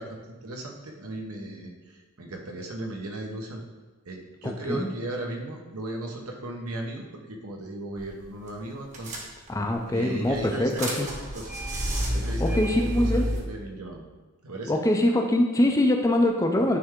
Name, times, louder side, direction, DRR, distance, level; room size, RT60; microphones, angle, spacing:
voice 1, 0.0-3.6 4.0-9.3 9.9-11.1 11.3-11.5 12.1-12.7 13.0-14.0 14.4-14.7, right 1 dB, 80° right, 1 dB, 1.1 m, -36 dB
voice 2, 4.4-4.9 9.5-11.1 12.4-13.3 14.7-16.8, left 1 dB, 15° left, 3 dB, 0.4 m, -23 dB
sound 1, 8.0-8.2 8.5-8.6 8.9-9.7 10.2-13.4, equal, 35° right, 1.0 m, -29 dB
9.4 x 3.3 x 3.7 m, 1.2 s
head